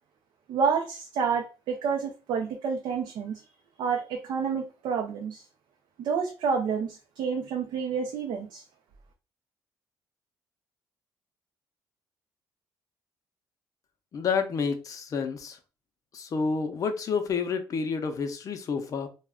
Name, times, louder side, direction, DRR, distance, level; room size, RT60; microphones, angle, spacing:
voice 1, 0.5-3.4 3.8-5.4 6.0-8.6, right 6 dB, 75° right, 0.4 m, -29 dB
voice 2, 14.1-15.6 16.1-19.1, left 5 dB, 45° left, 0.5 m, -29 dB
2.3 x 2.1 x 3.4 m
cardioid pair, 110°, 8 cm